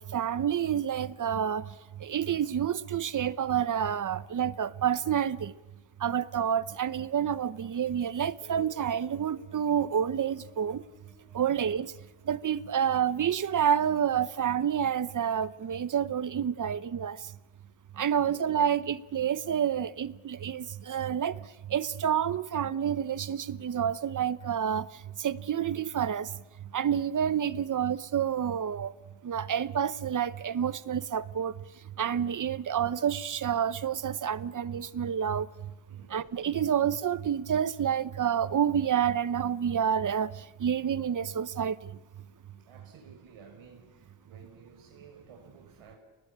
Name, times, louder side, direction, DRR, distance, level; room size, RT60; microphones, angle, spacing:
voice 1, 0.0-1.7 2.0-5.5 6.0-10.8 11.3-11.9 12.3-17.2 18.0-21.4 21.7-24.9 25.2-26.3 26.7-28.9 29.2-31.5 32.0-35.5 36.1-40.3 40.6-41.8, right 8 dB, 40° right, 17 dB, 0.8 m, -28 dB
Guitar, 8.4-15.1, left 1 dB, 15° left, 7.3 m, -60 dB
voice 2, 35.9-36.2 42.6-46.0, right 5 dB, 85° right, 2 dB, 6.0 m, -54 dB
29.5 x 19.5 x 8.7 m, 1.2 s
wide cardioid pair, 145°, 48 cm